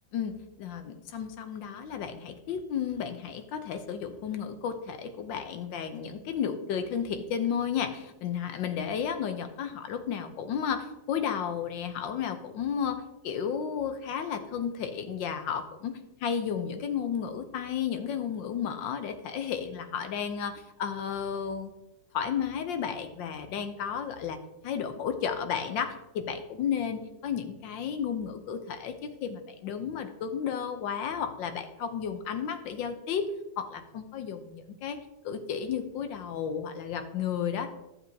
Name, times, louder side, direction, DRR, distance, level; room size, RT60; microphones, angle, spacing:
voice 1, 0.1-21.7 22.1-24.4 24.6-33.3 33.6-35.0 35.2-37.7, left 7 dB, 75° left, 8 dB, 1.5 m, -33 dB
12.0 x 7.4 x 2.8 m, 0.92 s
omnidirectional pair, 2.1 m